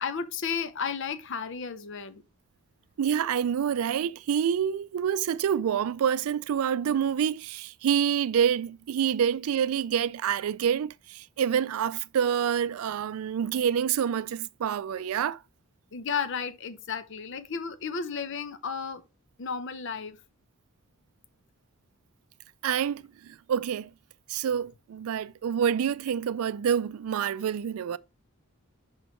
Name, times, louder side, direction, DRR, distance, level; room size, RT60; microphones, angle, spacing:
voice 1, 0.0-2.2 15.9-19.0 19.4-20.2, left 6 dB, 60° left, 0.7 m, -33 dB
voice 2, 3.0-15.4 22.6-23.9 24.3-28.0, right 8 dB, 80° right, 0.3 m, -27 dB
6.2 x 5.5 x 3.0 m
head